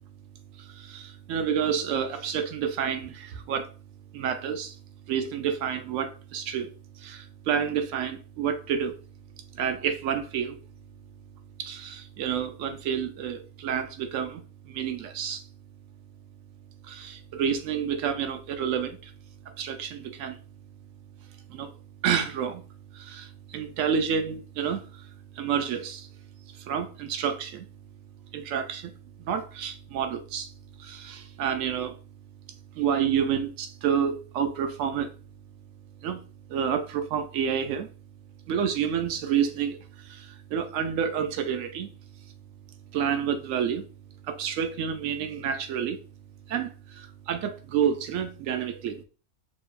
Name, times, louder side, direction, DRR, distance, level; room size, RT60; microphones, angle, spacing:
voice 1, 0.6-3.7 4.1-4.7 5.1-9.0 9.5-10.6 11.6-15.4 16.9-19.1 19.5-20.4 21.5-21.7 22.0-22.6 22.9-25.1 25.3-26.1 26.6-27.7 28.3-28.9 29.2-30.5 30.8-32.0 32.7-35.1 36.0-36.2 36.5-37.9 38.5-41.9 42.9-43.9 44.2-46.0 46.5-49.0, right 8 dB, 65° right, 1.0 m, -29 dB
6.7 x 3.1 x 2.4 m
omnidirectional pair, 1.5 m